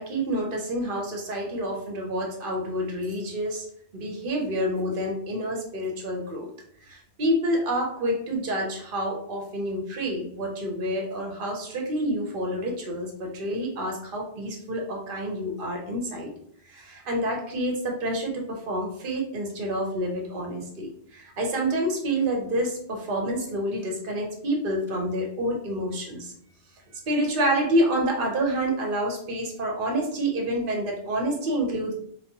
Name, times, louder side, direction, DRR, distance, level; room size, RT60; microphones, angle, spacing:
voice 1, 0.0-3.6 3.9-6.5 6.9-16.3 16.7-26.3 27.1-31.9, right 1 dB, 60° right, 0 dB, 0.8 m, -28 dB
3.0 x 2.0 x 2.8 m, 0.65 s
omnidirectional pair, 1.1 m